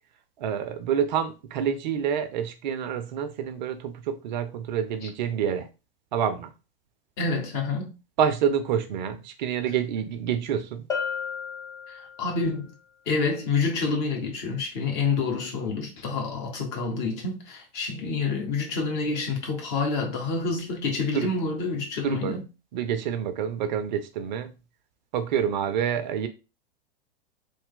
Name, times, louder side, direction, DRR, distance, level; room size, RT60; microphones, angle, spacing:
voice 1, 0.4-5.7 6.1-6.5 8.2-10.8 21.1-21.3 22.0-22.4 22.7-24.5 25.1-26.3, right 8 dB, 50° right, 0.5 m, -27 dB
voice 2, 7.2-7.9 11.9-12.6 13.1-22.4, left 4 dB, 45° left, 1.2 m, -28 dB
Bell, 10.9-12.5, left 6 dB, 10° left, 0.5 m, -33 dB
3.3 x 2.2 x 3.6 m
figure-of-eight pair, 90°, 30 cm